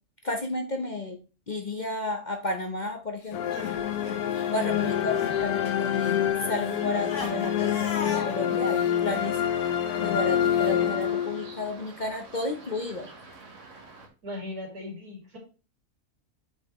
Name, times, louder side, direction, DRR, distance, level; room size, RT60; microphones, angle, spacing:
voice 1, 0.2-1.2 1.5-3.4 4.5-9.4 10.0-13.1, left 2 dB, 40° left, 4 dB, 0.7 m, -32 dB
Crying sobbing, 3.2-5.4 5.7-10.7, left 4 dB, 55° left, 1.6 m, -39 dB
sound 1, 3.3-11.7, left 10 dB, 85° left, 1.3 m, -27 dB
sound 2, 3.5-14.1, right 3 dB, 55° right, 1.8 m, -48 dB
voice 2, 4.6-5.4 14.2-15.4, left 1 dB, 80° right, 0 dB, 3.0 m, -39 dB
8.4 x 5.5 x 3.1 m, 0.33 s
omnidirectional pair, 1.6 m